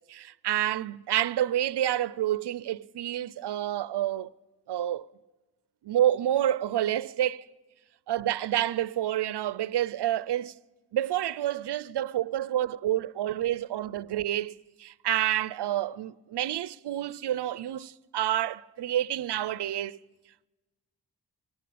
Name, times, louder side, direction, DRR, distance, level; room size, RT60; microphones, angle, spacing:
voice 1, 0.1-4.3 4.7-5.0 5.8-7.5 8.1-10.5 10.9-20.0, right 12 dB, 90° right, 0.7 m, -28 dB
24.0 x 18.0 x 8.6 m
cardioid pair, 80°, 39 cm